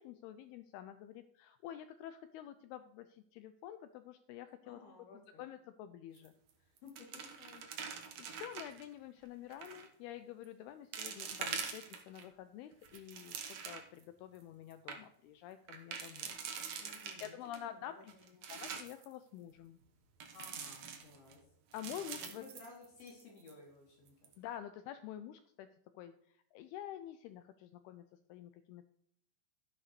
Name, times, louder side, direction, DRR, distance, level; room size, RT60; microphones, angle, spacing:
voice 1, 0.0-4.8 5.4-6.3 8.2-16.4 17.2-18.1 18.5-19.8 21.7-22.4 24.4-25.7 25.9-28.0 28.3-28.8, left 11 dB, 90° left, 10 dB, 2.2 m, -48 dB
voice 2, 4.6-5.4 6.8-7.9 16.8-18.4 20.3-21.4 22.2-24.3, left 4 dB, 65° left, -2 dB, 4.6 m, -56 dB
sound 1, 6.2-6.5 6.8-8.8 9.5-9.9 10.4-10.5 10.9-12.2 12.7-14.0 14.4-14.5 14.7-15.0 15.7-17.6 18.1-19.1 20.2-21.3 21.7-23.2 23.5-23.6 24.1-24.3, right 6 dB, 75° right, 1.6 m, -44 dB
14.5 x 10.0 x 3.2 m, 0.71 s
omnidirectional pair, 5.1 m